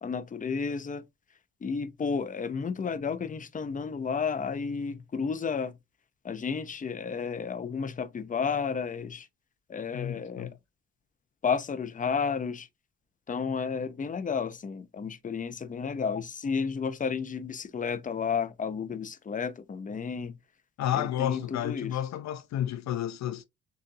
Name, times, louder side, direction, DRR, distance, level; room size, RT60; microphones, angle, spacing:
voice 1, 0.0-1.0 1.6-5.7 6.2-9.3 9.7-10.5 11.4-12.7 13.3-20.4 20.9-22.0, left 6 dB, 25° left, 0.6 m, -32 dB
voice 2, 9.9-10.5 20.8-23.4, left 11 dB, 65° left, 0.5 m, -31 dB
6.7 x 2.5 x 2.7 m
cardioid pair, 90°, 30 cm